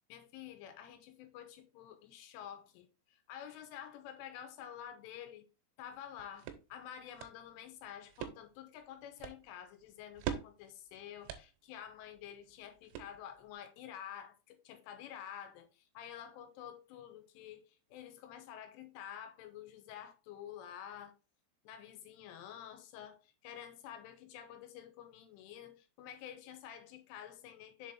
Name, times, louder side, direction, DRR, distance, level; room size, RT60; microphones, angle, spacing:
voice 1, 0.1-5.5 5.8-21.1 21.6-27.9, left 10 dB, 85° left, 3.4 m, -49 dB
sound 1, 5.9-13.6, right 10 dB, 80° right, 3.1 m, -47 dB
7.0 x 3.9 x 4.2 m
omnidirectional pair, 5.7 m